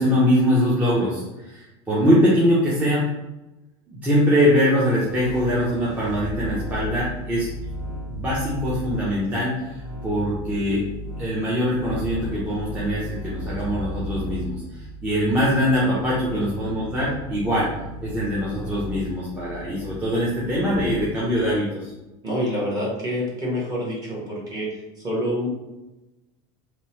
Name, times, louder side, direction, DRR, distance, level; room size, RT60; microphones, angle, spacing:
voice 1, 0.0-3.1 3.9-7.5 8.1-10.8 11.2-17.7 18.0-21.9, equal, 10° right, -7 dB, 0.4 m, -22 dB
sound 1, 5.0-21.6, right 1 dB, 45° right, 1.3 m, -35 dB
voice 2, 22.2-24.7 25.0-25.5, equal, 25° right, -5 dB, 0.9 m, -27 dB
2.9 x 2.0 x 2.7 m, 1.0 s
cardioid pair, 155°, 15 cm